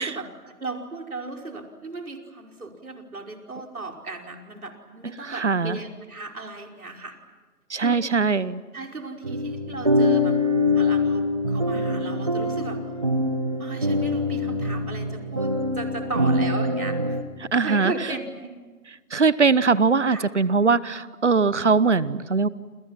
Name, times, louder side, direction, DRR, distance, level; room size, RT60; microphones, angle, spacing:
voice 1, 0.0-7.2 7.8-8.0 8.7-10.4 10.7-12.9 13.6-17.2 17.6-18.6 20.1-20.3, right 3 dB, 65° right, 2 dB, 5.3 m, -36 dB
voice 2, 5.2-5.8 7.7-8.6 17.5-17.9 19.1-22.5, right 4 dB, 50° right, 18 dB, 1.0 m, -21 dB
sound 1, 9.2-17.2, left 1 dB, 20° right, 1.2 m, -24 dB
30.0 x 28.5 x 5.9 m, 1.3 s
figure-of-eight pair, 170°, 46 cm